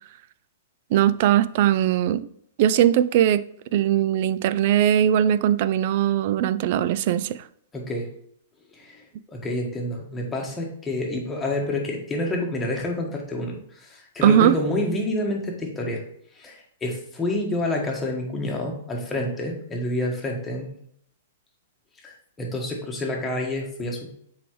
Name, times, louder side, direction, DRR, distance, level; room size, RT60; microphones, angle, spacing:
voice 1, 0.9-2.3 2.6-3.4 3.7-7.4 14.2-14.6, right 10 dB, 50° right, 0.3 m, -20 dB
voice 2, 7.7-8.1 8.7-9.0 9.3-16.0 16.3-20.7 22.0-24.1, left 1 dB, 10° left, 1.4 m, -28 dB
6.8 x 4.6 x 3.1 m
hypercardioid pair, 145°, 0 cm